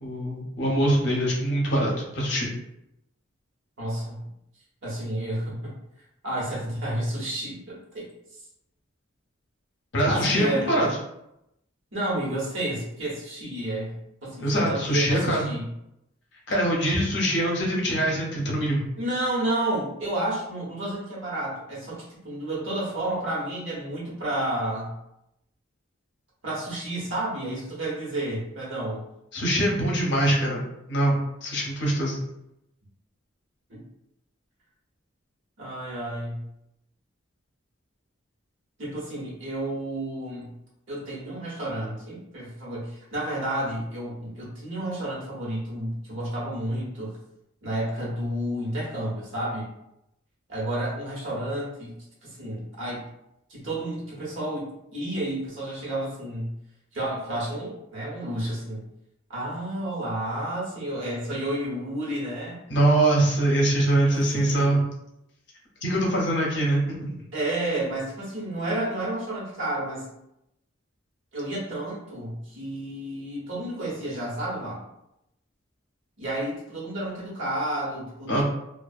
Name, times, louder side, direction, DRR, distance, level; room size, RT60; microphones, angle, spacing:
voice 1, 0.0-2.5 9.9-10.9 14.4-15.5 16.5-18.9 29.3-30.6 30.9-32.2 62.7-64.8 65.8-67.1 78.3-78.4, right 1 dB, 55° left, -2 dB, 0.6 m, -23 dB
voice 2, 3.8-4.2 4.8-5.7 6.2-8.1 10.1-10.8 11.9-15.6 19.0-24.9 26.4-29.1 33.7-33.8 35.6-36.4 38.8-40.5 40.9-47.2 47.6-49.6 50.5-52.0 52.2-53.1 53.5-56.5 56.9-58.8 59.3-62.6 64.1-64.9 67.3-70.1 71.3-74.9 76.2-78.4, right 1 dB, 70° right, -6 dB, 1.0 m, -31 dB
2.6 x 2.3 x 2.3 m, 0.82 s
head